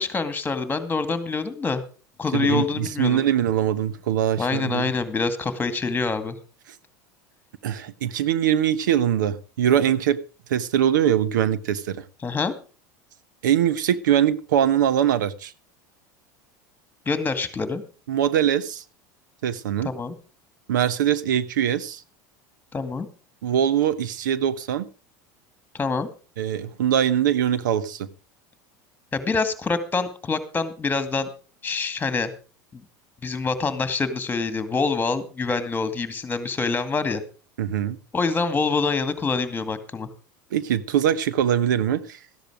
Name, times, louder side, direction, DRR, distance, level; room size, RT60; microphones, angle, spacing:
voice 1, 0.0-1.8 2.2-3.2 4.4-6.4 12.2-12.5 17.1-17.8 19.8-20.1 22.7-23.1 25.7-26.1 29.1-31.3 31.6-32.3 32.7-32.8 33.2-37.2 38.1-40.1, left 4 dB, 20° left, 12 dB, 2.2 m, -25 dB
voice 2, 2.3-4.9 7.6-10.2 10.5-12.0 13.4-15.5 18.1-18.8 19.4-19.9 20.7-22.0 23.4-24.9 26.4-28.1 37.6-38.0 40.5-42.2, right 10 dB, 85° right, 16 dB, 1.0 m, -22 dB
14.0 x 10.5 x 5.0 m, 0.36 s
supercardioid pair, 105°, 10 cm